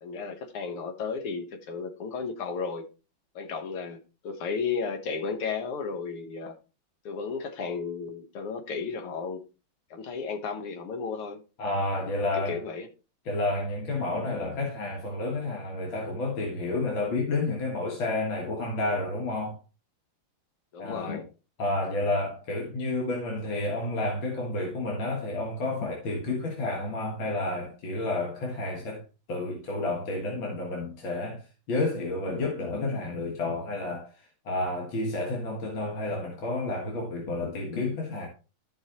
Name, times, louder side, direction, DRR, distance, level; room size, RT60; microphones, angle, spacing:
voice 1, 0.0-2.9 3.4-6.5 7.1-9.4 9.9-11.4 12.3-12.9 20.7-21.3, left 5 dB, 90° left, 2.2 m, -34 dB
voice 2, 11.6-12.6 13.3-19.6 20.8-21.2 21.6-29.0 29.3-31.4 31.7-34.1 34.5-38.3, left 2 dB, 65° left, 2.4 m, -30 dB
14.0 x 5.4 x 3.0 m
omnidirectional pair, 2.4 m